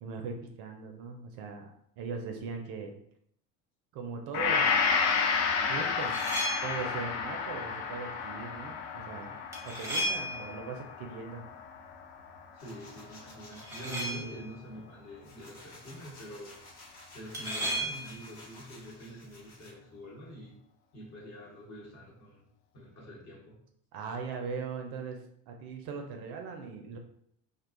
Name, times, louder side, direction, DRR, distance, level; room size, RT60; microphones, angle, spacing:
voice 1, 0.0-1.7 2.0-3.0 3.9-4.7 5.7-6.2 6.6-9.4 9.6-11.4 13.8-14.5 23.9-27.0, right 5 dB, 55° right, 3 dB, 0.5 m, -39 dB
Gong, 4.3-12.7 13.1-13.2, left 5 dB, 55° left, 0.5 m, -31 dB
sound 1, 5.9-7.0 9.5-10.7 13.5-14.5 17.3-18.3, equal, 5° right, 0.7 m, -35 dB
voice 2, 12.5-16.6 17.1-20.6 20.9-22.5 22.7-23.6, equal, 35° left, -3 dB, 1.0 m, -46 dB
sound 2, 12.6-14.2 14.7-19.7, left 2 dB, 70° left, 1.1 m, -53 dB
2.5 x 2.1 x 2.4 m, 0.69 s
hypercardioid pair, 80°, 46 cm